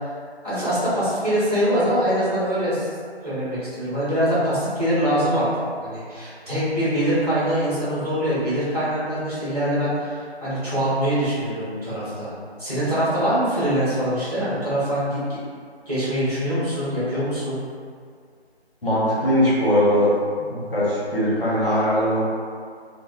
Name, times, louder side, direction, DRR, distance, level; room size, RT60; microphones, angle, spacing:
voice 1, 0.4-2.9 3.2-5.5 5.8-12.3 12.6-15.2 15.9-17.6, equal, 35° right, -12 dB, 0.9 m, -23 dB
voice 2, 18.8-20.1 20.4-22.2, equal, 55° left, -9 dB, 0.9 m, -20 dB
2.7 x 2.0 x 2.2 m, 2.1 s
figure-of-eight pair, 175°, 33 cm